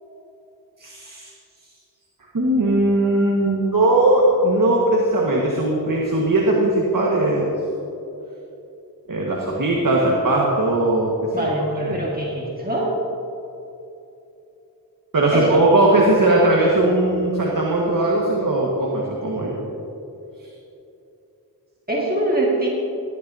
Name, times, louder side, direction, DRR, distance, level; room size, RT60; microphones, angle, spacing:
voice 1, 0.8-1.3 2.3-7.5 9.1-12.1 15.1-19.6, right 1 dB, 55° right, -3 dB, 1.7 m, -19 dB
voice 2, 11.3-12.9 15.3-15.6 21.9-22.7, right 1 dB, 25° right, -4 dB, 1.9 m, -23 dB
16.5 x 12.0 x 2.8 m, 2.9 s
cardioid pair, 45°, 39 cm